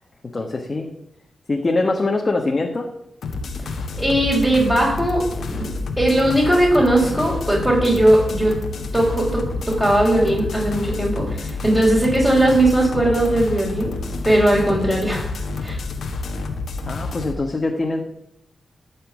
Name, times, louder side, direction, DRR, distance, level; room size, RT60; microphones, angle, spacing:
voice 1, 0.2-0.9 1.5-2.9 16.9-18.0, left 2 dB, 40° left, 2 dB, 1.3 m, -23 dB
sound 1, 3.2-17.3, left 3 dB, 75° left, 1.4 m, -29 dB
voice 2, 4.0-8.6 8.9-14.0 14.2-15.8, right 1 dB, 10° right, -6 dB, 4.0 m, -19 dB
12.5 x 4.4 x 7.2 m, 0.80 s
cardioid pair, 50°, 0 cm